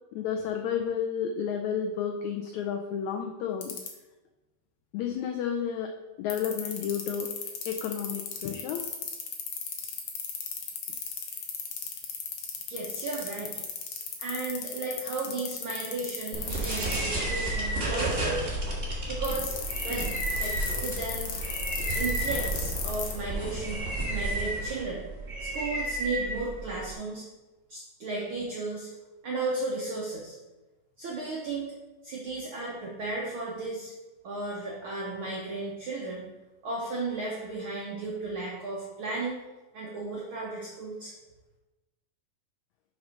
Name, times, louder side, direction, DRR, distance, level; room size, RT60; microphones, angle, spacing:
voice 1, 0.1-3.7 4.9-5.9 6.2-7.3 7.7-8.9, left 8 dB, 90° left, 4 dB, 1.6 m, -31 dB
sound 1, 3.6-3.9 6.3-16.9 19.2-23.2, left 8 dB, 65° left, 2.0 m, -34 dB
voice 2, 12.7-13.6 14.2-18.4 19.1-19.5 19.8-21.3 21.9-25.0 25.4-27.2 27.7-28.9 29.2-30.3 31.0-31.7 32.0-33.9 34.2-36.2 36.6-39.4 39.7-41.1, right 3 dB, 90° right, -3 dB, 1.1 m, -34 dB
sound 2, 16.3-26.9, right 1 dB, 35° right, 0.9 m, -31 dB
5.8 x 5.5 x 5.2 m, 1.1 s
omnidirectional pair, 3.9 m